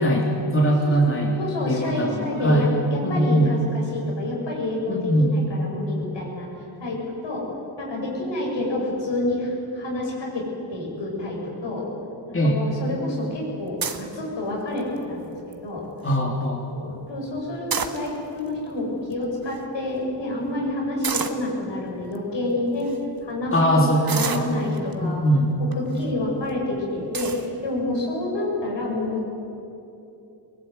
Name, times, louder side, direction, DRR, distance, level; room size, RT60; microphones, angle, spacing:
voice 1, 0.0-1.4 1.7-2.7 3.0-3.5 4.9-5.3 12.3-12.6 16.0-16.6 23.5-24.6 25.0-25.5, equal, 30° left, -1 dB, 3.1 m, -21 dB
voice 2, 0.7-1.1 1.4-3.6 3.9-6.5 6.8-7.4 7.8-10.4 10.7-11.8 12.3-15.8 16.7-22.9 23.2-23.8 24.0-25.2 25.8-29.3, left 1 dB, 75° left, -2 dB, 7.6 m, -28 dB
sound 1, 13.8-14.1 14.8-15.1 15.5-15.6 15.8-16.2 17.5-18.4 19.1-19.2 19.4-19.6 21.0-21.5 22.2-22.3 22.8-23.0 24.1-24.9 25.7-26.0 26.5-26.6 27.1-27.5, right 6 dB, 50° right, 1.6 m, -29 dB
22.5 x 19.5 x 9.4 m, 2.8 s
wide cardioid pair, 95°, 44 cm